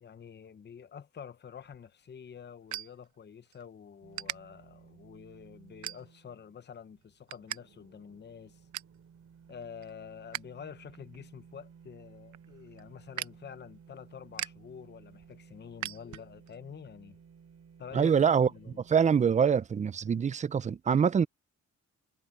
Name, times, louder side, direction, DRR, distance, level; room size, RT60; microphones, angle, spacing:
voice 1, 0.0-8.6 9.5-17.2 17.8-18.1 18.4-18.8, left 7 dB, 35° left, 0.8 m, -48 dB
sound 1, 1.6-3.6 4.1-4.4 4.9-5.2 5.8-6.4 6.8-7.6 7.9-8.0 8.4-9.0 9.5-10.5 10.8-16.6, right 12 dB, 80° right, 0.8 m, -42 dB
sound 2, 4.0-19.5, right 7 dB, 55° right, 3.2 m, -57 dB
voice 2, 17.9-18.5 18.9-21.3, right 7 dB, 25° right, 0.4 m, -24 dB
cardioid pair, 105°, 29 cm